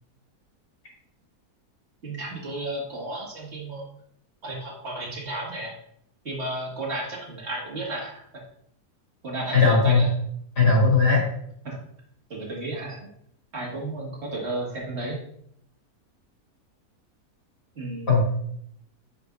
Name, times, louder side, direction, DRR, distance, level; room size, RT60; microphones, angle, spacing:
voice 1, 2.0-3.8 4.4-5.7 6.2-8.2 9.2-10.1 11.6-11.8 12.3-13.1 13.5-15.2 17.8-18.2, right 2 dB, 45° right, -3 dB, 2.2 m, -33 dB
voice 2, 9.5-10.1 10.6-11.3 18.1-18.4, left 4 dB, 85° left, -4 dB, 3.3 m, -18 dB
9.0 x 5.3 x 2.6 m, 0.70 s
omnidirectional pair, 1.7 m